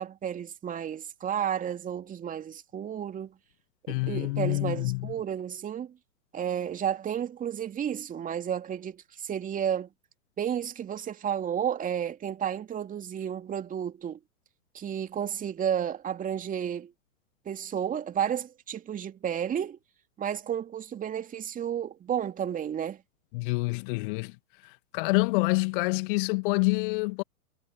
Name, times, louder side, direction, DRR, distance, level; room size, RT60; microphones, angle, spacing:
voice 1, 0.0-3.3 3.9-5.9 6.3-9.9 10.4-14.2 14.7-16.9 17.4-19.8 20.2-23.0, right 9 dB, 20° right, 2.8 m, -32 dB
voice 2, 3.9-5.0 23.3-24.3 24.9-27.2, left 27 dB, 35° left, 1.4 m, -27 dB
figure-of-eight pair, 105°, 43 cm